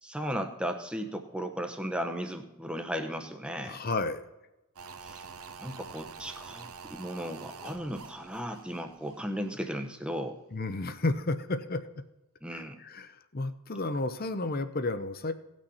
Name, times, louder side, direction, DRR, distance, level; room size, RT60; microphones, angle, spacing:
voice 1, 0.0-3.8 5.0-5.3 5.6-10.4 12.4-12.8, equal, 5° right, 5 dB, 0.8 m, -36 dB
voice 2, 3.6-4.2 10.5-11.8 12.5-15.3, left 2 dB, 40° left, 11 dB, 0.7 m, -32 dB
sound 1, 4.8-9.9 10.2-10.3, right 5 dB, 80° right, 0.9 m, -47 dB
18.0 x 6.2 x 4.3 m, 0.98 s
head